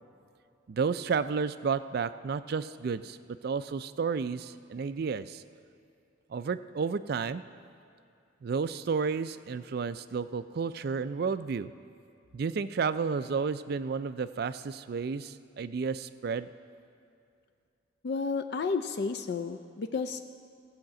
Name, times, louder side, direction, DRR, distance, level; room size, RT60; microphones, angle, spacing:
voice 1, 0.7-3.2 3.4-5.4 6.3-7.4 8.4-11.7 12.3-16.5, right 5 dB, 50° right, 13 dB, 0.3 m, -31 dB
voice 2, 18.0-20.3, left 4 dB, 55° left, 8 dB, 0.4 m, -32 dB
15.5 x 5.8 x 7.5 m, 2.4 s
head